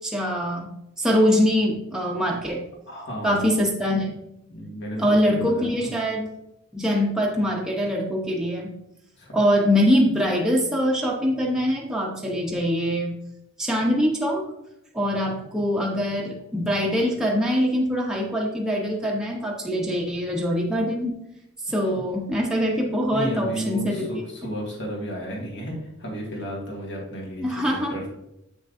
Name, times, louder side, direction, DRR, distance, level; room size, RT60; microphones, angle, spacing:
voice 1, 0.0-2.6 3.2-4.2 5.0-6.3 6.7-8.8 9.3-13.1 13.6-14.5 14.9-21.2 21.7-24.2 27.4-28.0, equal, 5° right, -2 dB, 0.8 m, -23 dB
voice 2, 2.9-3.4 4.5-5.9 9.2-9.4 23.1-28.1, equal, 60° left, -2 dB, 2.1 m, -33 dB
7.7 x 6.0 x 2.6 m, 0.83 s
head